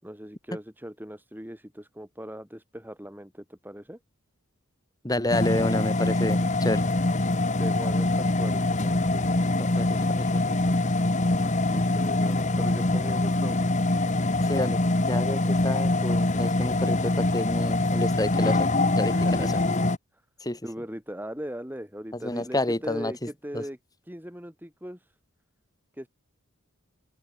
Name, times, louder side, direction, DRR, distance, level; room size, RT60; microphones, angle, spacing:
voice 1, 0.0-4.0 7.5-9.6 11.6-13.8 19.1-19.7 20.1-20.2 20.6-23.8 24.1-25.1 25.9-26.1, equal, 10° right, 5.5 m, -39 dB
voice 2, 5.0-6.8 9.6-10.6 14.5-14.8 15.1-18.7 18.9-19.5 20.4-20.6 22.2-23.1 23.5-23.6, left 1 dB, 20° left, 2.5 m, -29 dB
sound 1, 5.3-20.0, left 2 dB, 35° left, 1.4 m, -24 dB
open air
head